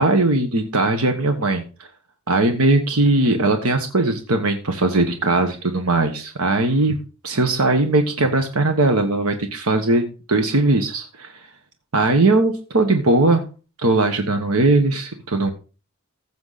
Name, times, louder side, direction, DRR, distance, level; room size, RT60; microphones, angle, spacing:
voice 1, 0.0-1.6 2.3-6.9 7.2-11.3 11.9-13.4 13.8-15.5, right 2 dB, 80° right, 6 dB, 1.4 m, -19 dB
15.0 x 7.1 x 4.1 m, 0.35 s
head